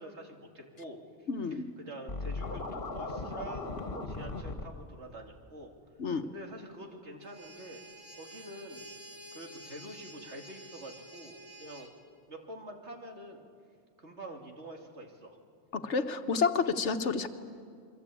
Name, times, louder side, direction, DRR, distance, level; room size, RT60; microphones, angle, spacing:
voice 1, 0.0-3.7 4.1-5.7 6.2-7.8 8.1-8.9 9.3-11.9 12.3-13.4 14.0-15.4, right 1 dB, 70° right, 2 dB, 2.9 m, -46 dB
voice 2, 1.3-1.7 6.0-6.3 15.7-17.3, left 5 dB, 75° left, 8 dB, 1.5 m, -30 dB
Scratching (performance technique), 2.1-4.6, left 3 dB, 50° left, 2.1 m, -37 dB
sound 1, 7.2-11.9, right 1 dB, 20° right, 3.5 m, -50 dB
28.0 x 23.5 x 8.5 m, 2.2 s
omnidirectional pair, 1.2 m